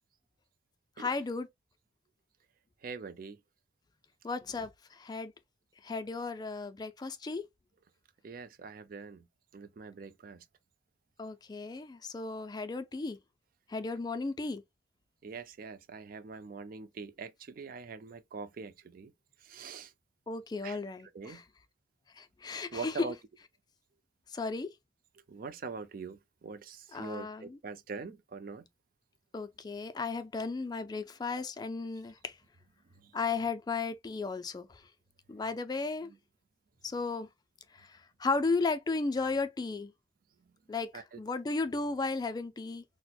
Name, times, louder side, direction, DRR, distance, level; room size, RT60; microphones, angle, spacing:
voice 1, 1.0-1.5 4.2-5.3 5.8-7.4 11.2-13.2 13.7-14.6 20.3-21.4 22.2-23.1 24.3-24.7 26.9-27.6 29.3-32.4 33.1-34.8 35.3-36.1 36.8-37.3 37.7-39.9 40.7-42.8, left 3 dB, 20° left, 0.3 m, -35 dB
voice 2, 2.8-3.4 8.2-9.2 9.5-10.4 15.2-19.1 19.4-19.9 20.6-20.8 21.1-21.4 22.7-23.2 25.3-28.6 33.0-33.1 36.0-36.1 40.9-41.2, right 4 dB, 50° right, 0.4 m, -43 dB
4.2 x 2.1 x 2.2 m
head